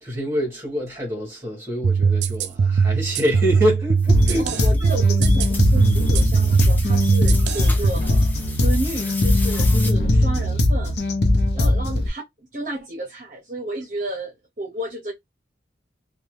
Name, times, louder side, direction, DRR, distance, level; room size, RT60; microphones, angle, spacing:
voice 1, 0.0-4.5 11.6-11.7, equal, 15° right, 1.3 m, -25 dB
sound 1, 1.8-7.9, right 5 dB, 65° right, 0.4 m, -20 dB
sound 2, 4.0-9.9, left 2 dB, 10° left, 0.3 m, -37 dB
sound 3, 4.1-12.1, left 1 dB, 60° left, 0.6 m, -20 dB
voice 2, 4.6-8.3 8.6-11.0 11.5-12.2 12.5-15.1, right 1 dB, 45° right, 0.8 m, -32 dB
2.7 x 2.2 x 3.1 m
head